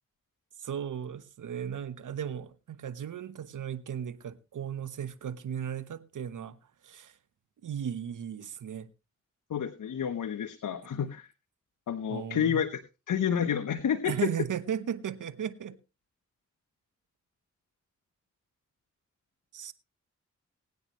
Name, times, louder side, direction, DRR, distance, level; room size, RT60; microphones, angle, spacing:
voice 1, 0.6-6.6 6.8-7.2 7.6-8.9 12.1-12.6 14.0-15.8 19.5-19.7, right 9 dB, 85° right, 1.0 m, -36 dB
voice 2, 9.5-11.3 11.9-12.8 13.1-14.1, left 8 dB, 85° left, 1.0 m, -29 dB
20.5 x 9.5 x 3.1 m
cardioid pair, 45°, 30 cm